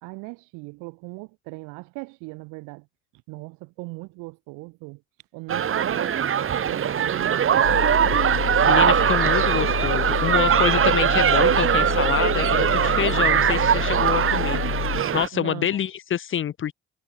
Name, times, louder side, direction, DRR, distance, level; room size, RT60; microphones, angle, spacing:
voice 1, 0.0-2.9 3.3-5.0 5.3-6.2 6.7-7.9 15.3-15.8, right 27 dB, 70° right, 3.6 m, -38 dB
sound 1, 5.5-15.3, right 9 dB, 40° right, 1.7 m, -21 dB
sound 2, 7.6-15.0, left 16 dB, 60° left, 1.9 m, -29 dB
voice 2, 8.7-16.7, left 9 dB, 40° left, 0.9 m, -27 dB
hypercardioid pair, 55°, 33 cm